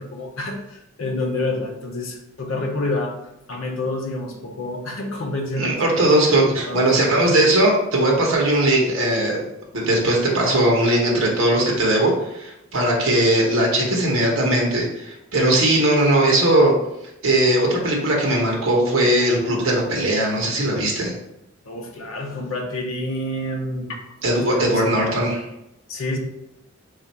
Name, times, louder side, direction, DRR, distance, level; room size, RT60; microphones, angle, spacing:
voice 1, 0.0-3.2 3.5-6.1 6.7-7.5 21.6-24.0 24.5-25.1 25.9-26.2, left 2 dB, 75° left, 1 dB, 0.6 m, -28 dB
voice 2, 5.5-9.4 9.7-16.7 17.2-21.1 24.2-25.4, right 1 dB, 90° right, -1 dB, 0.9 m, -19 dB
3.4 x 2.4 x 4.2 m, 0.86 s
head